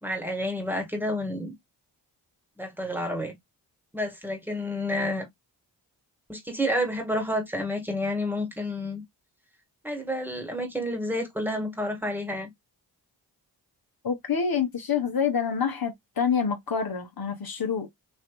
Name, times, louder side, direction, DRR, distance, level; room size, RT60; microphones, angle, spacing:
voice 1, 0.0-1.6 2.6-3.4 3.9-5.3 6.3-9.0 9.8-12.5, left 1 dB, 5° right, 1.4 m, -29 dB
voice 2, 14.0-17.9, left 6 dB, 50° left, 1.1 m, -27 dB
3.3 x 2.9 x 2.2 m
supercardioid pair, 40°, 46 cm